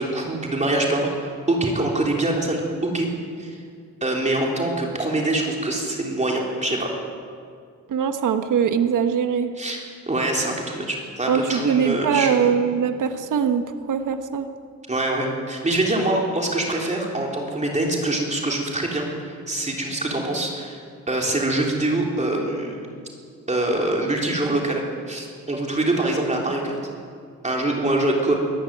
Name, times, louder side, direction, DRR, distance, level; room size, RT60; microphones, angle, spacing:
voice 1, 0.0-3.1 3.4-3.6 4.0-6.9 9.6-9.8 10.1-12.4 14.9-20.8 21.1-22.8 23.5-26.8 27.4-28.3, right 2 dB, 25° right, -1 dB, 3.7 m, -24 dB
voice 2, 7.9-9.5 11.3-14.5, right 7 dB, 85° right, 7 dB, 1.4 m, -22 dB
23.5 x 14.0 x 9.3 m, 2.2 s
cardioid pair, 105°, 30 cm